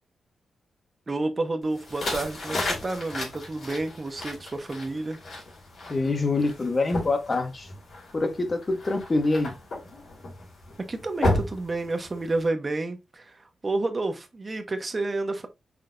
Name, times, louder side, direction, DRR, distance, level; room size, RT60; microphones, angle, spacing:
voice 1, 1.1-5.2 10.9-15.5, right 2 dB, 25° right, 0.7 m, -30 dB
sound 1, 1.7-12.5, left 2 dB, 50° left, 2.5 m, -34 dB
voice 2, 5.9-7.7 8.1-9.5, left 3 dB, 25° left, 0.8 m, -25 dB
5.8 x 3.2 x 2.5 m
wide cardioid pair, 175°, 0 cm